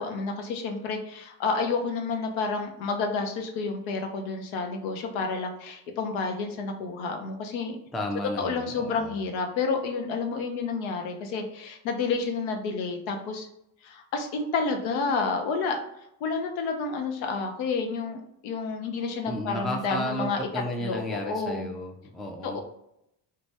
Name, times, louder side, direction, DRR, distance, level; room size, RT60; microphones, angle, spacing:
voice 1, 0.0-7.8 8.2-13.5 13.8-15.8 16.2-20.5 20.8-21.7 22.4-22.6, left 4 dB, 70° left, 4 dB, 0.7 m, -30 dB
voice 2, 7.9-9.2 19.3-22.6, left 1 dB, ahead, 2 dB, 0.3 m, -33 dB
2.6 x 2.2 x 3.2 m, 0.80 s
hypercardioid pair, 60°, 49 cm